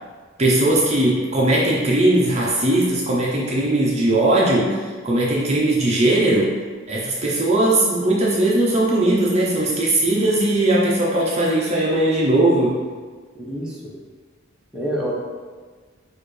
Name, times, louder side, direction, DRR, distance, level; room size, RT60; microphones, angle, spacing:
voice 1, 0.4-4.8 5.0-6.5 6.9-12.7, right 1 dB, 35° right, -4 dB, 0.7 m, -19 dB
voice 2, 13.3-13.9 14.7-15.1, equal, 5° right, -6 dB, 0.8 m, -27 dB
6.4 x 2.5 x 3.2 m, 1.5 s
head